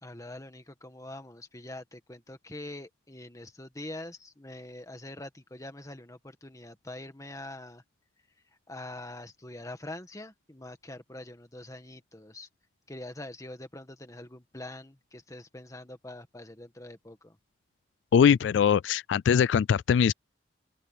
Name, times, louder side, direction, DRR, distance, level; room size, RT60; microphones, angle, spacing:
voice 1, 0.0-7.8 8.7-12.5 12.9-17.4, left 1 dB, 20° left, 1.8 m, -44 dB
voice 2, 18.1-20.1, left 7 dB, 80° left, 0.3 m, -22 dB
open air
head